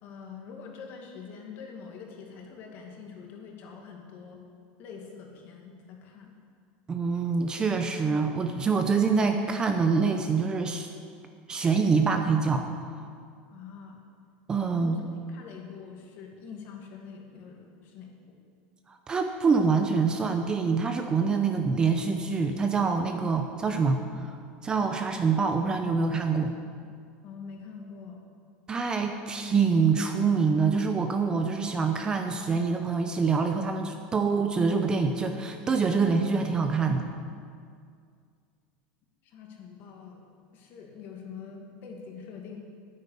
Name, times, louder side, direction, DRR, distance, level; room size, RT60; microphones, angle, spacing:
voice 1, 0.0-4.4 4.8-6.3 13.5-14.0 14.7-18.4 27.2-28.2 39.2-40.2 40.5-42.6, left 6 dB, 45° left, 1 dB, 2.2 m, -45 dB
voice 2, 6.9-10.9 11.5-12.7 14.5-15.0 18.9-24.3 24.6-26.5 28.7-37.0, right 5 dB, 15° right, 6 dB, 0.7 m, -25 dB
9.7 x 9.2 x 8.5 m, 2.2 s
supercardioid pair, 155°, 5 cm